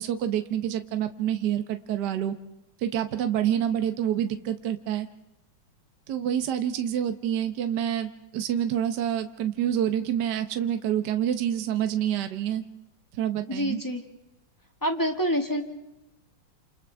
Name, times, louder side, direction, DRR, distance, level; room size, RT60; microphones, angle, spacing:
voice 1, 0.0-2.3 2.8-5.1 6.1-12.6 13.1-13.8, right 10 dB, 60° right, 8 dB, 1.4 m, -27 dB
voice 2, 13.5-14.0 14.8-15.6, equal, 10° left, 3 dB, 1.5 m, -27 dB
29.5 x 28.0 x 3.4 m, 0.98 s
omnidirectional pair, 2.4 m